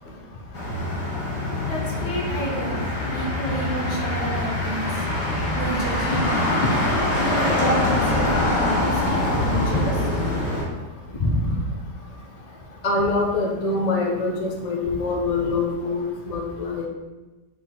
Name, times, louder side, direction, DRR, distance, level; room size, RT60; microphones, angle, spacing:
Motor vehicle (road), 0.5-10.6, left 1 dB, 85° left, 2.1 m, -24 dB
voice 1, 1.7-5.1 5.5-6.6 7.1-9.9, equal, 65° left, -4 dB, 2.0 m, -30 dB
voice 2, 11.2-11.6 12.8-16.9, left 3 dB, 35° left, 0 dB, 0.6 m, -24 dB
5.9 x 4.7 x 3.9 m, 1.2 s
omnidirectional pair, 1.7 m